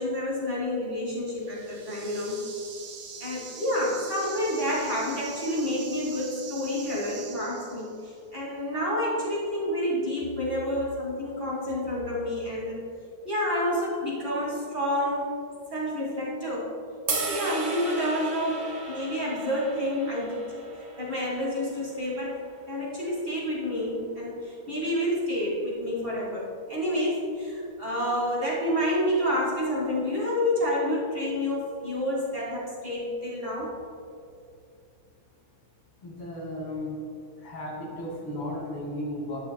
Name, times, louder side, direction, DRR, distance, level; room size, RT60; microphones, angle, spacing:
voice 1, 0.0-2.4 3.2-12.8 13.2-15.3 15.7-16.7 17.1-20.5 20.7-22.4 22.7-33.7, left 1 dB, 30° right, -5 dB, 1.8 m, -29 dB
sound 1, 1.4-8.1, right 5 dB, 75° right, 1.8 m, -43 dB
sound 2, 17.1-23.3, right 3 dB, 55° right, 1.8 m, -36 dB
voice 2, 36.0-37.0 37.4-39.4, left 1 dB, 80° left, -3 dB, 3.1 m, -35 dB
12.0 x 9.5 x 2.3 m, 2.4 s
omnidirectional pair, 2.3 m